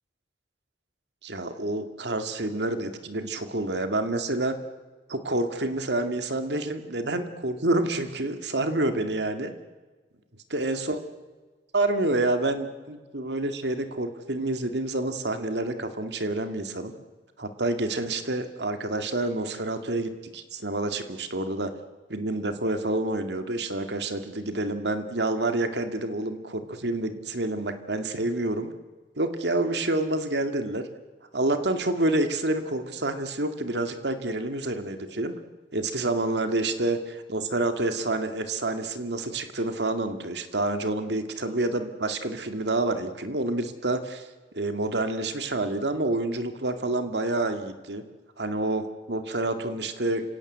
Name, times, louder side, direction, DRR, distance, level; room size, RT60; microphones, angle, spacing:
voice 1, 1.2-4.5 5.1-9.5 10.5-11.0 11.7-16.9 17.4-21.7 22.1-28.7 29.2-30.8 31.3-35.3 35.7-44.3 44.5-48.0 48.4-50.2, right 2 dB, 75° right, 7 dB, 2.2 m, -28 dB
29.5 x 17.0 x 8.1 m, 1.3 s
head